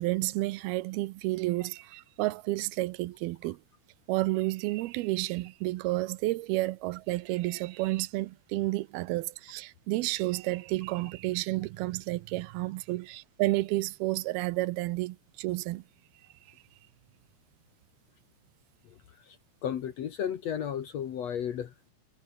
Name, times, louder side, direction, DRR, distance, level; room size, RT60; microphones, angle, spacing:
voice 1, 0.0-3.6 4.1-15.8, right 19 dB, 85° right, 2.6 m, -31 dB
voice 2, 18.8-19.4 19.6-21.9, left 9 dB, 60° left, 1.9 m, -34 dB
omnidirectional pair, 4.4 m